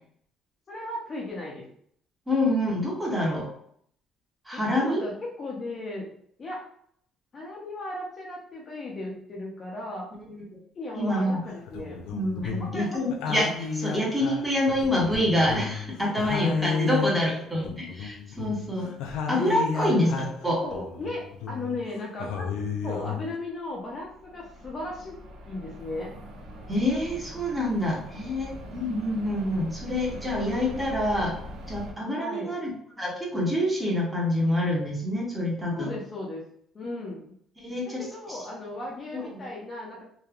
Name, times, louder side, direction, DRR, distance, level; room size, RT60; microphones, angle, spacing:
voice 1, 0.7-1.6 4.5-6.1 6.4-6.6 7.3-10.1 10.8-12.0 12.4-13.0 16.7-16.9 17.2-17.4 19.7-19.9 20.6-22.4 22.8-25.2 25.5-26.1 32.2-32.6 35.7-36.4 36.7-37.3 37.9-40.0, left 2 dB, 30° left, -3 dB, 0.5 m, -36 dB
voice 2, 2.3-3.5 4.5-5.0 10.2-10.6 10.9-11.4 12.1-18.9 19.3-20.1 20.4-20.6 26.7-31.4 31.7-32.7 33.0-35.9 37.6-38.0 38.3-38.4 39.1-39.4, left 1 dB, 10° right, -4 dB, 0.8 m, -27 dB
sound 1, 11.5-12.8 13.1-15.9 16.2-20.4 20.7-21.8 22.2-23.4, left 5 dB, 90° left, 0.4 m, -32 dB
sound 2, 23.7-31.9, equal, 65° right, 0.5 m, -42 dB
2.9 x 2.3 x 2.4 m, 0.66 s
cardioid pair, 150°, 0 cm